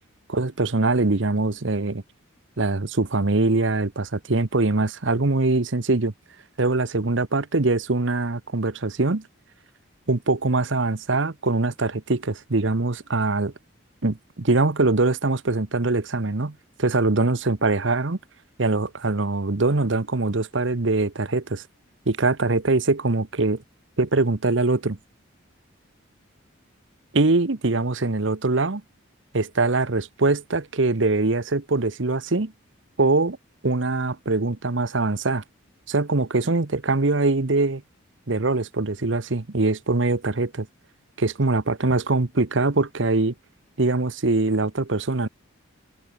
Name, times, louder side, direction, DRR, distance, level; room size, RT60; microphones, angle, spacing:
voice 1, 0.3-2.0 2.6-6.1 6.6-9.3 10.1-13.5 14.0-18.2 18.6-21.6 22.1-23.6 24.0-25.0 27.1-28.8 29.3-32.5 33.0-33.4 33.6-35.4 35.9-37.8 38.3-40.7 41.2-43.3 43.8-45.3, right 3 dB, 65° right, 1.1 m, -23 dB
head